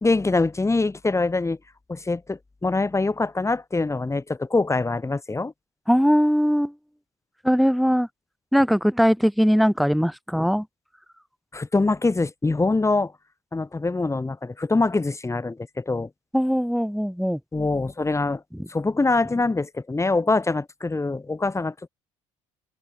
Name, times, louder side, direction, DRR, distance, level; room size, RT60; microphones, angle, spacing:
voice 1, 0.0-1.6 1.9-5.5 11.5-13.1 13.5-16.1 17.5-18.4 18.7-21.9, left 3 dB, 15° left, 3.2 m, -24 dB
voice 2, 5.9-6.7 7.4-8.1 8.5-10.7 16.3-17.4 18.6-18.7, equal, ahead, 2.1 m, -20 dB
figure-of-eight pair, 60°, 17 cm